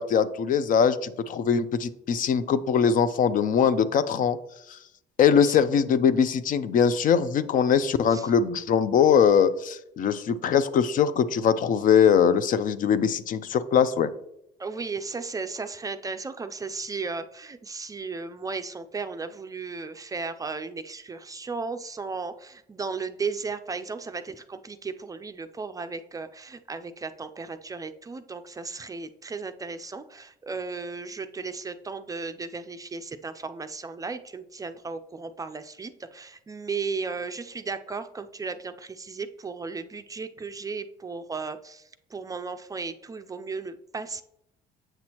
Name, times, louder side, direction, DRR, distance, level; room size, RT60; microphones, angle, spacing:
voice 1, 0.0-4.4 5.2-14.1, left 7 dB, 55° left, 13 dB, 0.5 m, -22 dB
voice 2, 14.6-41.8 42.1-44.2, right 4 dB, 20° right, 9 dB, 0.4 m, -35 dB
7.8 x 6.0 x 2.9 m, 0.78 s
cardioid pair, 110°, 17 cm